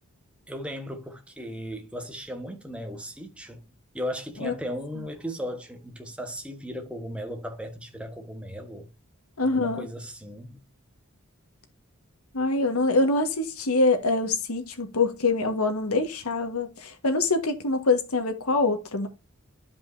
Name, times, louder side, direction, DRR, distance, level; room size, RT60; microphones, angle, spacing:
voice 1, 0.5-3.6 3.9-8.9 9.4-10.6, equal, 5° right, 1.3 m, -36 dB
voice 2, 9.4-9.8 12.3-19.1, left 3 dB, 90° left, 1.6 m, -24 dB
12.0 x 5.3 x 2.7 m
head